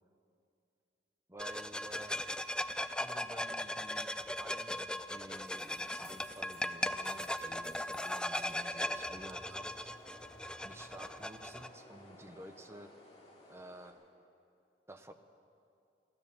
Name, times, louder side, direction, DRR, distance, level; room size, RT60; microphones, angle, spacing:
voice 1, 1.3-2.3 2.8-9.9 10.6-13.0 13.5-14.0 14.9-15.1, right 1 dB, 15° right, 7 dB, 0.8 m, -52 dB
sound 1, 1.4-11.7, left 1 dB, 5° left, 0.3 m, -38 dB
sound 2, 5.3-13.9, left 1 dB, 35° left, 2.5 m, -58 dB
sound 3, 5.3-6.7 6.9-8.6, right 5 dB, 70° right, 4.0 m, -59 dB
16.0 x 12.5 x 7.1 m, 2.5 s
head